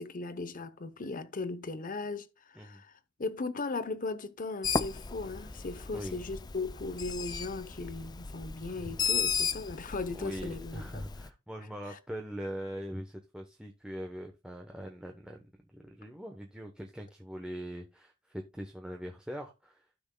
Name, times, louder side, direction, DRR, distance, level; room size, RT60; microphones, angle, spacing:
voice 1, 0.0-2.9 3.2-11.0, left 3 dB, 40° left, 0.8 m, -37 dB
Bird, 4.6-11.3, left 5 dB, 20° left, 0.4 m, -35 dB
voice 2, 8.8-9.2 9.8-15.4 15.7-19.9, equal, 5° right, 0.9 m, -42 dB
15.5 x 6.2 x 2.2 m
head